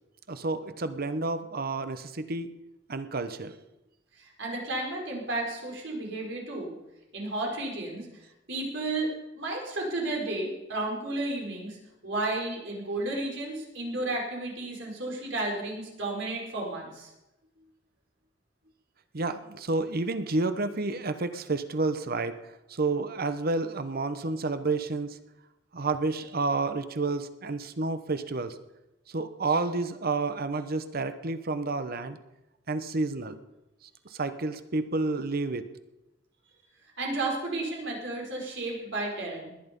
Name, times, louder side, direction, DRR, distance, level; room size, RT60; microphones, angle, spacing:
voice 1, 0.3-2.5 2.9-3.6 19.1-25.2 25.7-28.6 29.1-32.2 32.7-33.4 34.0-35.7, right 3 dB, 50° right, 11 dB, 0.9 m, -30 dB
voice 2, 4.2-6.7 7.1-8.1 8.5-9.1 9.3-11.8 12.0-17.1 37.0-39.5, right 2 dB, 70° right, -1 dB, 5.0 m, -32 dB
20.0 x 10.5 x 5.3 m, 0.95 s
head